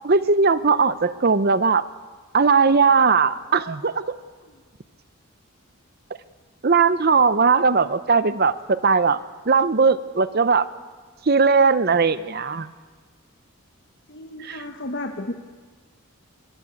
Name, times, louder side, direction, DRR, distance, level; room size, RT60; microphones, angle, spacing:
voice 1, 0.0-1.8 2.3-4.2 6.6-9.2 9.5-10.7 11.3-12.7 14.4-14.6, right 4 dB, 45° right, 14 dB, 0.6 m, -19 dB
voice 2, 14.1-15.3, left 1 dB, 50° left, 5 dB, 1.2 m, -33 dB
21.5 x 21.5 x 8.3 m, 1.6 s
head